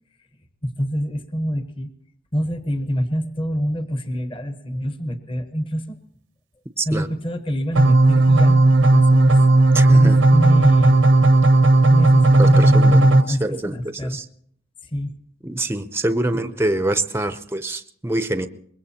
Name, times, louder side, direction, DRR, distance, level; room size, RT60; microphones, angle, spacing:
voice 1, 0.6-1.9 2.3-6.0 6.9-8.6 8.9-11.0 11.9-14.2 14.9-15.1, equal, 30° left, 8 dB, 1.0 m, -26 dB
voice 2, 6.8-7.1 9.7-10.2 12.4-14.3 15.4-18.5, right 1 dB, 15° right, 10 dB, 0.6 m, -25 dB
sound 1, 7.8-13.2, right 2 dB, 80° right, 0.8 m, -14 dB
23.5 x 21.0 x 2.8 m, 0.64 s
head